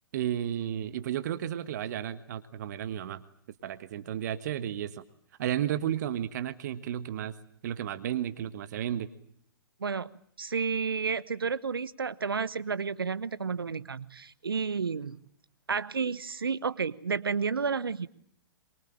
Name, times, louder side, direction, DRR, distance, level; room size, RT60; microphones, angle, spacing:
voice 1, 0.1-3.2 3.6-5.0 5.4-7.3 7.6-9.1, right 10 dB, 50° right, 12 dB, 1.5 m, -33 dB
voice 2, 10.4-15.2 15.7-18.1, right 5 dB, 75° right, 17 dB, 1.0 m, -31 dB
23.5 x 23.5 x 8.9 m, 0.65 s
figure-of-eight pair, 115°, 12 cm